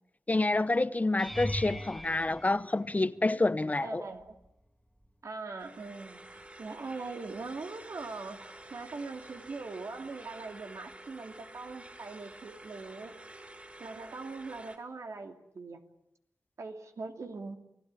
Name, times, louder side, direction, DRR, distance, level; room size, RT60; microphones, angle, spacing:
voice 1, 0.3-4.0, left 2 dB, 30° left, 0.9 m, -28 dB
sound 1, 1.2-3.5 4.2-4.6 5.0-5.1 9.5-9.6, equal, ahead, 1.7 m, -40 dB
voice 2, 3.8-4.3 5.2-6.2 6.6-8.4 8.7-13.1 13.8-15.8 16.6-17.6, right 3 dB, 70° right, 3.0 m, -41 dB
sound 2, 5.6-14.8, right 1 dB, 25° right, 5.0 m, -50 dB
28.5 x 17.0 x 9.9 m
cardioid pair, 55°, 5 cm